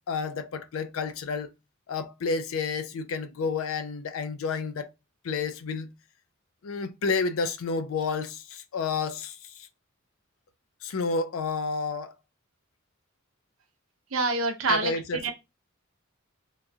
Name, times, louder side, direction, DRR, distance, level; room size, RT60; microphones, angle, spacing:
voice 1, 0.1-1.5 1.9-4.9 5.2-5.9 6.6-9.7 10.8-12.2 14.7-15.2, left 4 dB, 70° left, 0.4 m, -30 dB
voice 2, 14.1-14.9 15.2-15.3, right 3 dB, 70° right, 0.7 m, -25 dB
3.0 x 2.3 x 2.5 m
head